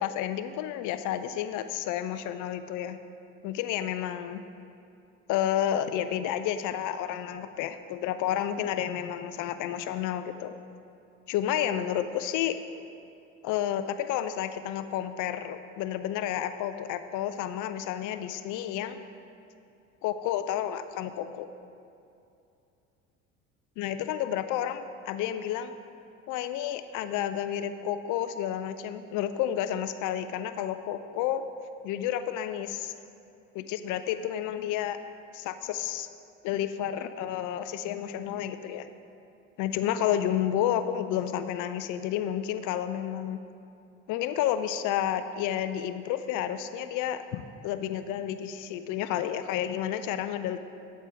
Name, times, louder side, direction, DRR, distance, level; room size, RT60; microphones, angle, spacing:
voice 1, 0.0-3.0 3.4-4.4 5.3-10.5 11.3-12.6 13.4-19.0 20.0-21.5 23.8-25.7 26.3-31.4 31.8-32.9 33.5-35.0 35.3-36.1 36.4-38.9 39.6-43.4 44.1-50.6, left 10 dB, 60° left, 10 dB, 0.5 m, -31 dB
8.1 x 4.4 x 4.9 m, 2.6 s
hypercardioid pair, 70°, 36 cm